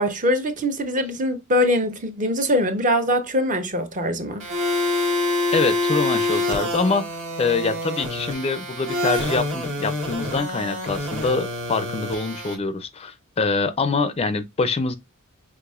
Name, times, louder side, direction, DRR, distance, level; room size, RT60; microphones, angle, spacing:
voice 1, 0.0-4.5, equal, 35° right, 0.7 m, -22 dB
sound 1, 4.4-12.5, left 2 dB, 60° right, 1.7 m, -26 dB
voice 2, 5.5-7.1 7.4-15.0, left 4 dB, 25° left, 0.4 m, -24 dB
5.9 x 3.0 x 2.4 m
head